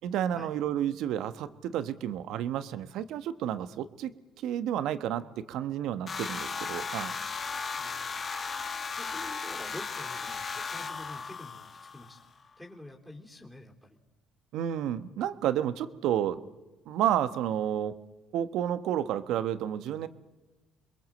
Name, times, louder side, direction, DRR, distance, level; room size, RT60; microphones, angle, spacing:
voice 1, 0.0-4.1 4.4-7.2 14.5-16.4 16.9-17.9 18.3-20.1, right 10 dB, 70° right, 12 dB, 1.2 m, -31 dB
sound 1, 6.1-12.2, left 5 dB, 40° left, 1.8 m, -36 dB
voice 2, 7.7-8.4 9.0-12.3 12.6-14.0, left 1 dB, ahead, -2 dB, 3.6 m, -47 dB
28.5 x 21.5 x 7.7 m, 1.1 s
supercardioid pair, 70°, 0 cm